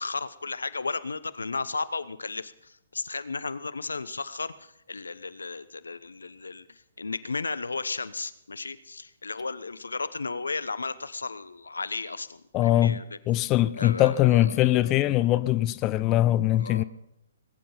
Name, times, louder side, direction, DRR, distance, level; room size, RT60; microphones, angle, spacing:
voice 1, 0.0-13.2 13.7-15.1 15.5-15.6 16.6-16.8, left 4 dB, 85° left, 0.9 m, -34 dB
voice 2, 12.5-13.0 13.3-16.8, left 14 dB, 25° left, 0.6 m, -22 dB
20.5 x 10.0 x 5.7 m
figure-of-eight pair, 130°, 0 cm